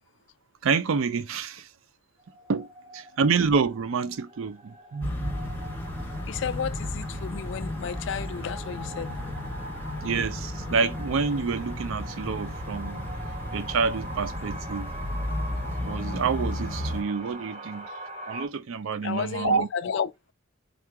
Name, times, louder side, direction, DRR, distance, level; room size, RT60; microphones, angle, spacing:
voice 1, 0.6-1.7 2.5-2.7 2.9-5.4 10.0-13.1 13.5-14.9 15.8-17.9 18.2-19.7, right 5 dB, 75° right, 0.4 m, -28 dB
sound 1, 2.2-18.5, right 1 dB, 30° right, 0.7 m, -43 dB
sound 2, 5.0-17.0, left 1 dB, 10° left, 0.7 m, -34 dB
voice 2, 6.3-9.2 19.0-20.1, left 7 dB, 60° left, 0.3 m, -32 dB
3.7 x 2.3 x 4.5 m
head